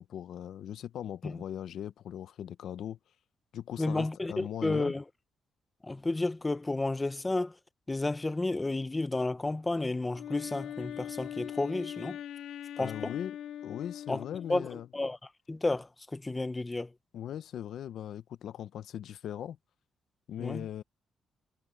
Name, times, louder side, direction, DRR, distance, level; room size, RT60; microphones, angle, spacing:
voice 1, 0.0-3.0 3.5-4.9 12.8-13.4 13.6-14.9 17.1-19.6 20.3-20.8, left 10 dB, 70° left, 0.6 m, -39 dB
voice 2, 3.8-5.0 5.8-7.5 7.9-12.2 12.8-13.1 14.1-14.2 14.5-14.7 14.9-15.2 15.5-16.9 20.4-20.7, left 2 dB, 15° left, 0.7 m, -31 dB
Wind instrument woodwind instrument, 10.1-14.9, left 10 dB, 85° left, 2.0 m, -41 dB
cardioid pair, 160°, 0 cm